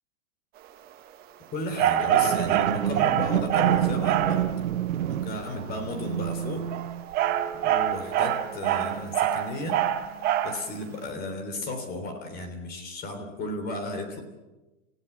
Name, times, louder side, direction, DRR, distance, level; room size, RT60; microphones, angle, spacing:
voice 1, 1.5-4.5 5.1-6.7 7.6-9.8 10.4-14.2, left 2 dB, 25° left, 6 dB, 3.5 m, -34 dB
sound 1, 1.8-4.4 6.6-10.6, right 11 dB, 25° right, 1.2 m, -25 dB
sound 2, 2.0-9.4 10.0-10.1, right 11 dB, 90° right, 1.0 m, -30 dB
29.5 x 16.0 x 7.1 m, 1.1 s
hypercardioid pair, 150°, 39 cm